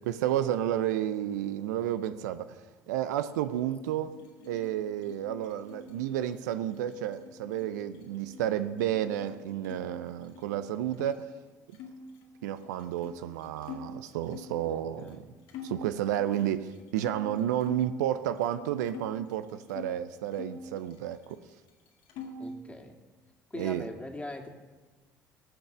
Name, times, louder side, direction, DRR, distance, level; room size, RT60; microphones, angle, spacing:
voice 1, 0.0-2.6 2.9-4.2 4.5-11.3 12.4-15.2 15.6-21.4 23.5-23.9, right 11 dB, 75° right, 0.6 m, -31 dB
sound 1, 4.1-9.8 10.1-11.1 11.7-14.6 15.1-15.2 15.5-17.9 18.3-19.9 20.3-21.4 21.7-22.6, left 5 dB, 60° left, 1.8 m, -46 dB
voice 2, 14.6-15.2 22.4-23.0 23.5-24.5, left 2 dB, 15° left, 2.2 m, -41 dB
19.0 x 6.4 x 6.7 m
figure-of-eight pair, 55°, 10 cm